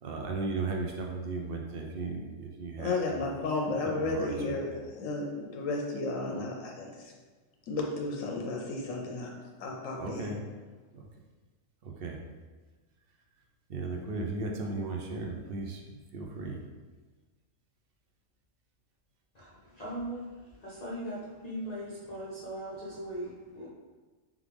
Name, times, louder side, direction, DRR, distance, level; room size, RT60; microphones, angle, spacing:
voice 1, 0.0-3.0 3.8-4.6 10.0-10.4 10.9-11.0 11.8-12.2 13.7-16.6, right 3 dB, 55° right, 0 dB, 0.7 m, -36 dB
voice 2, 2.8-7.1 7.7-9.3 9.6-10.4, left 2 dB, 85° left, 0 dB, 1.0 m, -33 dB
voice 3, 19.3-23.7, right 1 dB, 45° left, -6 dB, 0.5 m, -39 dB
3.6 x 3.5 x 3.3 m, 1.3 s
omnidirectional pair, 1.4 m